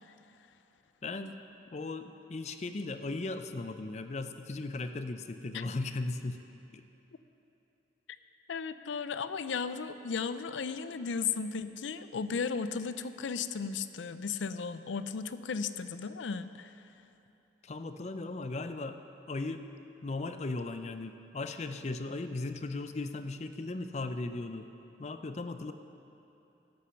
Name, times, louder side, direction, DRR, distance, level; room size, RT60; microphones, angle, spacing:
voice 1, 1.0-1.4 1.7-6.4 6.7-6.8 17.6-19.0 19.3-19.7 20.0-24.7 25.0-25.7, left 2 dB, 40° left, 9 dB, 0.5 m, -37 dB
voice 2, 8.5-16.7, left 5 dB, 90° left, 12 dB, 0.5 m, -35 dB
13.0 x 8.6 x 5.8 m, 2.9 s
head